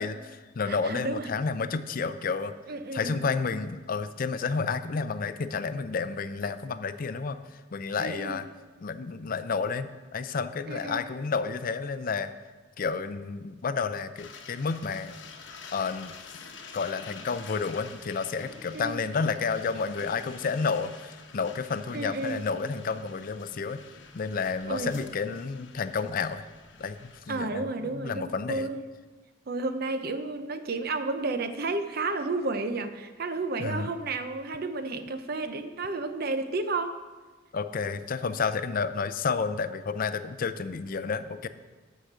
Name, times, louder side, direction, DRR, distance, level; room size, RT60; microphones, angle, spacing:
voice 1, 0.0-2.5 2.9-7.4 7.7-8.5 8.8-12.3 12.8-15.2 15.7-16.2 16.7-23.8 24.1-26.4 26.8-28.7 33.6-33.9 37.5-41.5, left 5 dB, 50° left, 12 dB, 0.5 m, -31 dB
voice 2, 0.7-1.3 2.7-3.2 8.0-8.4 10.7-11.0 18.7-18.9 21.9-22.4 24.7-24.9 27.3-28.8 29.5-37.0, right 3 dB, 55° right, 9 dB, 0.7 m, -32 dB
sound 1, 14.2-27.2, left 5 dB, 80° left, 1.1 m, -48 dB
12.0 x 5.0 x 6.8 m, 1.3 s
head